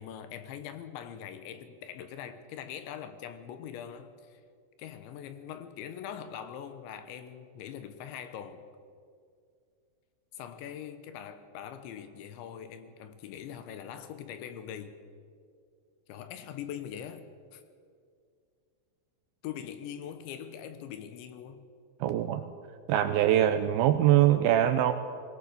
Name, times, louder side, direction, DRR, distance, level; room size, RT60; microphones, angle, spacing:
voice 1, 0.0-4.4 4.8-8.7 10.3-15.0 16.1-17.2 17.5-17.6 19.4-21.6, left 9 dB, 90° left, 3.5 m, -42 dB
voice 2, 22.0-22.5 22.9-24.9, right 12 dB, 80° right, 2.2 m, -23 dB
22.0 x 18.0 x 6.8 m
omnidirectional pair, 5.1 m